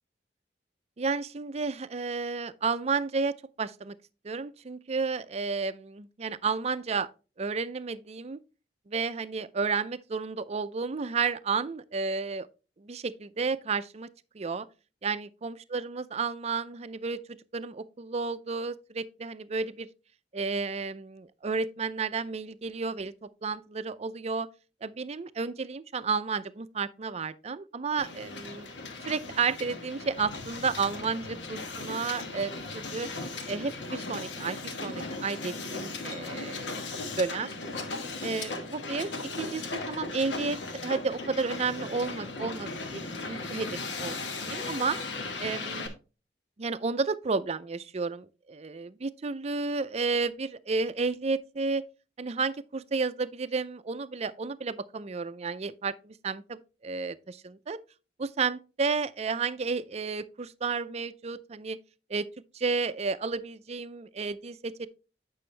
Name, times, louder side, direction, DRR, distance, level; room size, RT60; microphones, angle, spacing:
voice 1, 1.0-4.0 4.2-7.1 7.4-8.4 8.9-12.5 12.8-14.1 14.3-14.7 15.0-17.2 17.5-19.9 20.3-24.5 24.8-28.7 29.1-33.1 33.5-36.8 37.2-37.5 38.2-43.7 44.0-45.0 45.4-45.9 46.6-51.8 52.2-57.8 58.2-61.8 62.1-62.3 62.5-64.9, right 4 dB, 35° right, 0.5 m, -32 dB
Hiss, 28.0-45.9, left 3 dB, 90° left, 1.4 m, -37 dB
8.7 x 6.1 x 3.2 m
head